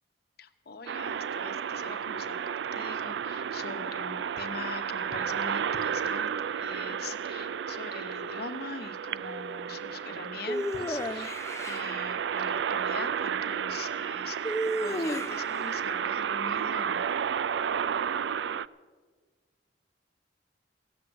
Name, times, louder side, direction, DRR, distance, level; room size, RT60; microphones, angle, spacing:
voice 1, 0.4-11.4 11.6-17.0, left 4 dB, 60° left, 8 dB, 0.9 m, -43 dB
sound 1, 0.9-18.7, right 8 dB, 75° right, 0.4 m, -32 dB
sound 2, 10.5-11.9 14.4-15.6, equal, 15° left, 0.5 m, -32 dB
15.5 x 7.9 x 9.7 m, 1.5 s
head